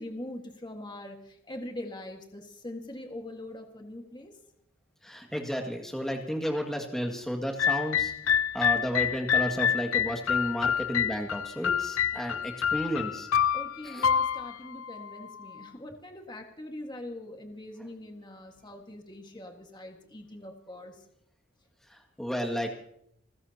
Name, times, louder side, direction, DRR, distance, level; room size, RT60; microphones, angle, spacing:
voice 1, 0.0-4.3 13.5-21.0, left 1 dB, 20° left, 3 dB, 1.7 m, -42 dB
voice 2, 5.0-13.3 13.8-14.1 21.9-22.7, equal, ahead, 2 dB, 2.0 m, -32 dB
sound 1, 7.6-15.6, left 8 dB, 80° left, 0.5 m, -28 dB
30.0 x 14.5 x 2.9 m, 0.72 s
head